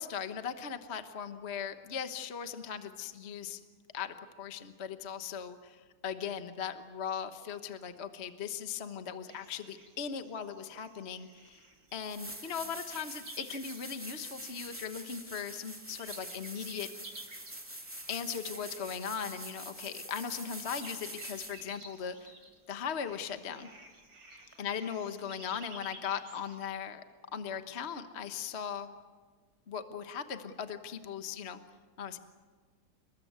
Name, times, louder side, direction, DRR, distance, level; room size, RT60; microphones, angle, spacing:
voice 1, 0.0-3.6 3.9-11.6 11.9-16.9 18.1-22.3 22.7-23.7 24.6-27.0 27.3-28.9 29.7-31.6 32.0-32.2, left 7 dB, 35° left, 8 dB, 1.2 m, -39 dB
sound 1, 9.3-26.6, right 2 dB, 60° right, 4.6 m, -54 dB
sound 2, 11.5-11.6 12.0-21.7 24.5-24.6, right 1 dB, 5° right, 2.3 m, -45 dB
30.0 x 20.5 x 8.2 m, 1.5 s
omnidirectional pair, 2.4 m